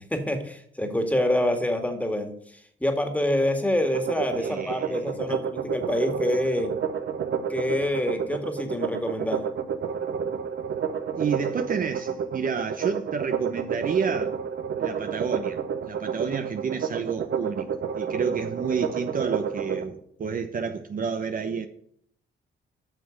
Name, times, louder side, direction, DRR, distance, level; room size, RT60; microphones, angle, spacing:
voice 1, 0.0-2.3 2.8-6.7 7.5-9.4, left 1 dB, 5° left, 2.0 m, -26 dB
sound 1, 3.8-19.8, right 7 dB, 60° right, 1.1 m, -30 dB
voice 2, 4.4-5.2 11.1-14.4 14.8-17.7 17.9-21.7, right 6 dB, 45° right, 0.9 m, -30 dB
9.2 x 6.0 x 6.5 m
cardioid pair, 90°, 20 cm